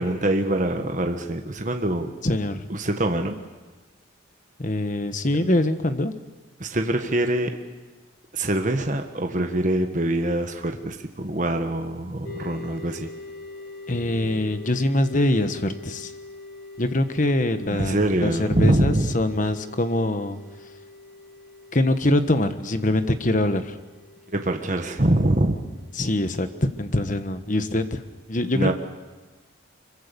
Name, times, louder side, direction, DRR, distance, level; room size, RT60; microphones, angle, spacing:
voice 1, 0.0-2.1 2.7-3.4 5.4-5.5 6.6-7.6 8.3-13.1 17.7-19.1 24.3-25.6 28.5-28.7, right 1 dB, 40° right, 5 dB, 1.4 m, -24 dB
voice 2, 2.2-2.6 4.6-6.1 13.9-16.1 16.8-20.4 21.7-23.7 26.0-28.0 28.3-28.7, left 1 dB, 40° left, 9 dB, 1.3 m, -23 dB
sound 1, 12.2-26.1, left 3 dB, 55° left, 3.9 m, -43 dB
24.5 x 23.0 x 7.0 m, 1.3 s
head